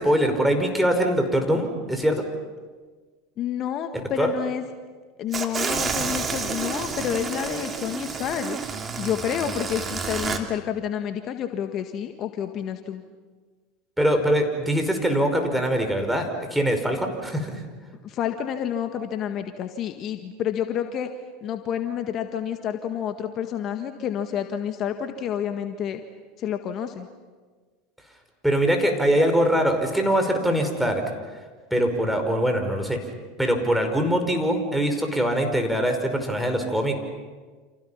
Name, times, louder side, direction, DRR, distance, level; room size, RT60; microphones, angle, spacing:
voice 1, 0.0-2.2 4.2-4.3 14.0-17.6 28.4-31.0 31.7-33.0 33.4-36.9, equal, 5° right, 5 dB, 5.3 m, -23 dB
voice 2, 3.4-4.6 5.2-8.6 9.0-13.0 18.0-21.1 21.4-26.0 26.4-27.1, left 9 dB, 45° left, 7 dB, 1.7 m, -29 dB
sound 1, 5.3-10.4, right 5 dB, 25° right, 3.0 m, -30 dB
29.5 x 28.0 x 5.8 m, 1.4 s
hypercardioid pair, 85°, 0 cm